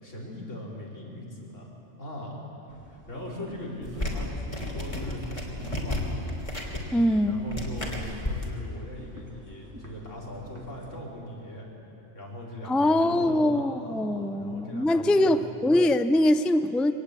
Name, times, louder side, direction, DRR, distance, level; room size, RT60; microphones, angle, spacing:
voice 1, 0.0-6.0 7.2-11.7 12.1-15.4, left 1 dB, 80° left, -4 dB, 4.8 m, -40 dB
sound 1, 2.7-11.0, equal, 15° right, 2.1 m, -49 dB
sound 2, 3.8-8.5, left 1 dB, 25° left, 3.2 m, -33 dB
voice 2, 6.9-7.4 12.7-16.9, left 1 dB, ahead, 10 dB, 0.3 m, -23 dB
23.5 x 19.0 x 8.4 m, 2.9 s
omnidirectional pair, 1.3 m